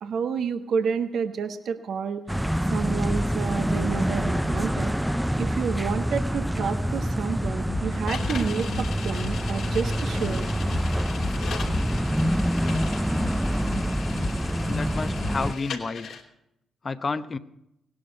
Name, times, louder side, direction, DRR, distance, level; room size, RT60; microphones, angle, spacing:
voice 1, 0.0-2.2 2.7-4.9 5.4-10.5, right 6 dB, 65° right, 8 dB, 1.1 m, -29 dB
sound 1, 2.3-15.5, equal, 5° right, 0.6 m, -26 dB
sound 2, 7.7-15.5, left 3 dB, 55° left, 1.9 m, -36 dB
sound 3, 8.1-16.2, left 6 dB, 75° left, 2.9 m, -39 dB
voice 2, 14.6-16.1 16.8-17.4, left 4 dB, 40° left, 11 dB, 0.9 m, -30 dB
17.5 x 11.0 x 5.3 m, 0.83 s
supercardioid pair, 50°, 0 cm